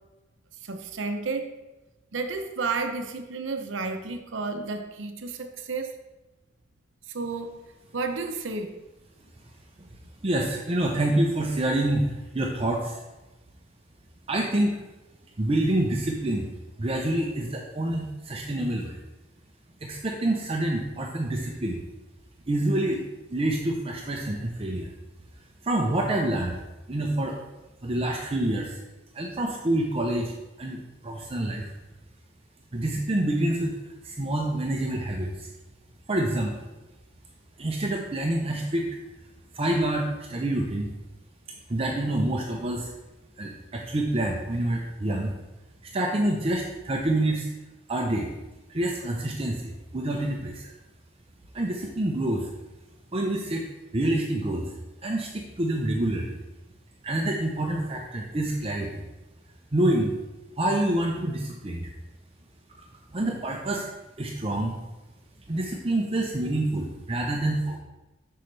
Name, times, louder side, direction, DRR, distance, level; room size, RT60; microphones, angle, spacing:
voice 1, 0.6-1.5 2.1-6.0 7.1-7.6 7.9-8.7, right 4 dB, 80° right, 6 dB, 0.7 m, -31 dB
voice 2, 10.2-13.0 14.3-14.8 15.4-16.5 16.8-19.0 19.8-21.8 22.5-23.0 23.3-24.9 25.6-26.6 26.9-27.4 27.8-28.8 29.1-31.6 32.7-33.8 34.0-35.5 36.1-36.7 37.6-38.9 39.5-40.9 41.7-42.9 43.4-45.3 45.8-47.5 47.9-48.3 48.7-50.7 51.5-52.5 53.1-53.7 53.9-54.7 55.0-56.4 57.0-59.0 59.7-60.1 60.6-61.9 62.8-62.9 63.1-63.9 64.2-64.8 65.5-67.8, right 1 dB, 30° right, 0 dB, 0.6 m, -27 dB
8.1 x 5.6 x 3.3 m, 1.0 s
head